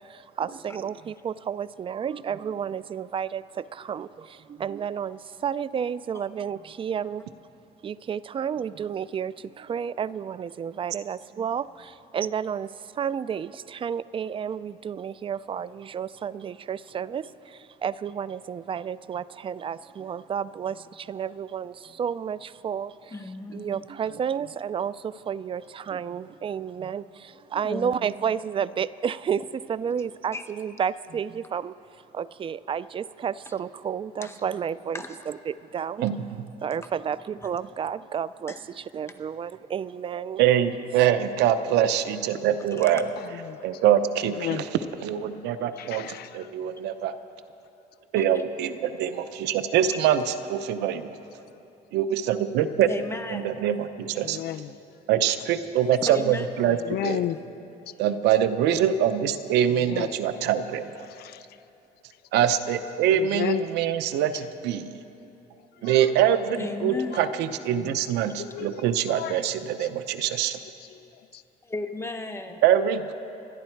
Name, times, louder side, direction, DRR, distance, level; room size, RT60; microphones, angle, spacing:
voice 1, 0.0-7.3 7.8-23.1 23.5-36.1 36.6-40.4, right 8 dB, 30° right, 18 dB, 0.4 m, -31 dB
voice 2, 23.1-23.6 27.6-27.9 30.3-30.4 33.5-33.6 34.2-34.4 34.9-35.2 38.5-38.6 42.8-43.0 45.7-45.9 48.2-48.4 49.9-50.0 52.9-53.5 56.0-56.5 66.6-67.2 71.6-72.5, left 2 dB, 15° left, 5 dB, 1.2 m, -34 dB
voice 3, 40.4-43.0 43.6-44.6 45.0-46.1 46.3-47.1 48.1-51.1 51.9-52.9 53.3-54.4 55.1-56.8 57.0-57.2 58.0-60.9 62.3-64.9 65.8-70.6 72.6-73.1, right 10 dB, 85° right, 11 dB, 0.8 m, -24 dB
voice 4, 43.2-43.8 44.2-44.7 45.8-46.5 54.1-54.7 55.3-55.5 56.1-56.2 56.6-57.4 59.5-60.1 61.0-61.6 62.9-63.7 64.3-64.5 65.7-66.3 67.0-69.5 69.8-69.9 70.5-71.4, left 13 dB, 70° left, 14 dB, 0.5 m, -35 dB
28.5 x 11.0 x 4.6 m, 2.8 s
cardioid pair, 110°, 17 cm